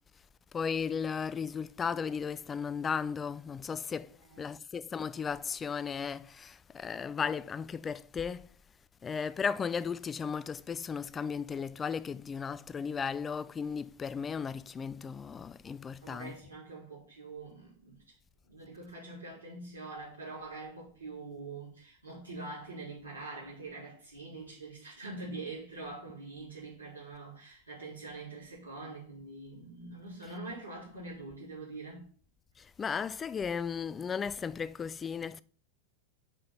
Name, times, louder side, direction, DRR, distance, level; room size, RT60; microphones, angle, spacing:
voice 1, 0.5-4.1 4.4-8.5 9.0-16.3 32.6-35.4, left 6 dB, 20° left, 0.3 m, -35 dB
voice 2, 16.0-18.0 18.5-32.1, right 3 dB, 85° right, 2.9 m, -44 dB
5.9 x 5.1 x 5.5 m
figure-of-eight pair, 90°, 0 cm